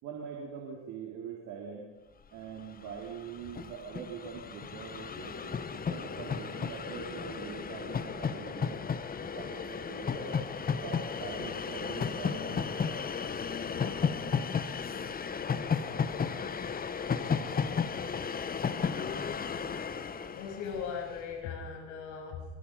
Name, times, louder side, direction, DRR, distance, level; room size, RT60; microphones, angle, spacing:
voice 1, 0.0-1.9 2.3-8.8 9.2-13.0, right 6 dB, 50° right, -1 dB, 4.5 m, -43 dB
Train, 2.6-2.7 2.8-21.2, left 6 dB, 25° left, 1.5 m, -34 dB
voice 2, 20.3-22.5, left 6 dB, 55° left, 1 dB, 7.7 m, -38 dB
23.5 x 22.5 x 5.2 m, 1.2 s
hypercardioid pair, 75°, 36 cm